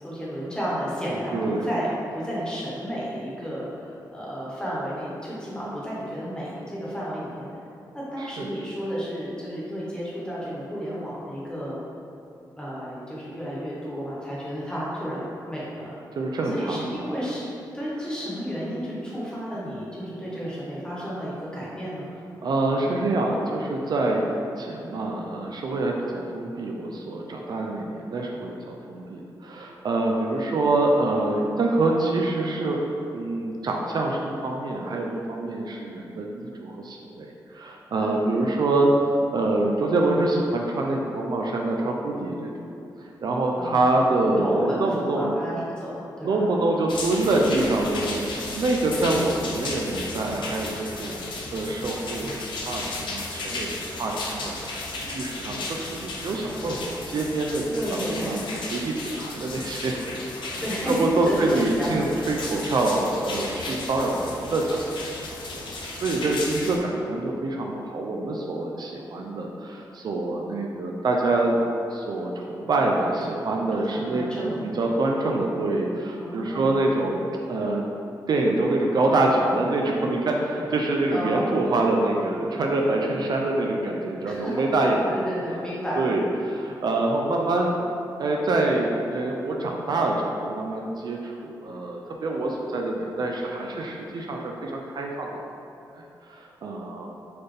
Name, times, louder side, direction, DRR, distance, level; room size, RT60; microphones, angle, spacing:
voice 1, 0.0-7.5 7.9-11.8 12.6-15.8 16.4-22.1 38.0-38.1 43.6-43.8 44.3-46.3 57.7-58.4 60.6-62.0 73.7-74.6 76.1-76.7 81.1-81.5 84.2-84.6 85.1-86.0, equal, 10° left, -7 dB, 1.2 m, -32 dB
voice 2, 1.3-1.7 8.2-8.5 16.2-17.0 22.4-24.3 24.6-32.8 33.1-38.9 39.3-42.5 43.2-45.3 46.2-51.2 51.5-52.3 52.7-59.9 60.4-64.8 65.2-71.6 71.9-77.8 78.3-85.6 86.0-87.7 88.2-95.4 95.9-97.1, right 2 dB, 60° right, 0 dB, 0.4 m, -26 dB
sound 1, 46.9-66.8, left 2 dB, 80° left, 0.5 m, -34 dB
4.2 x 2.5 x 3.3 m, 2.8 s
cardioid pair, 75°, 8 cm